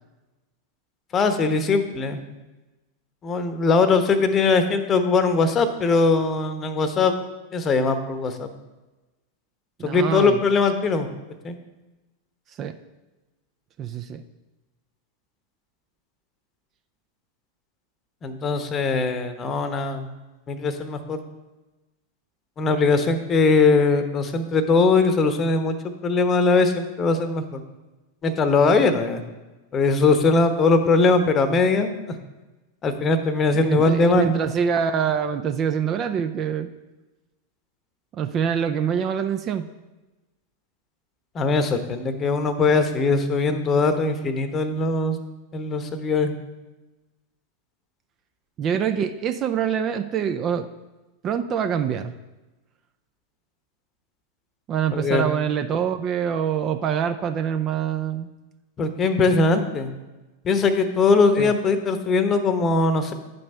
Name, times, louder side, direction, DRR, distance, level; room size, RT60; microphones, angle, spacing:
voice 1, 1.1-2.2 3.2-7.2 7.5-8.5 9.8-11.1 11.4-11.6 18.2-20.1 20.5-21.2 22.6-27.6 28.2-29.2 29.7-32.2 32.8-34.3 41.3-45.2 45.5-46.3 54.9-55.3 58.8-59.9 60.4-63.1, left 4 dB, 25° left, 9 dB, 0.9 m, -21 dB
voice 2, 9.8-10.4 12.6-12.7 13.8-14.2 33.5-36.7 38.2-39.6 48.6-50.7 51.2-52.1 54.7-58.3 61.4-61.5, right 8 dB, 30° right, 8 dB, 0.5 m, -25 dB
9.5 x 5.4 x 5.4 m, 1.1 s
figure-of-eight pair, 90°, 0 cm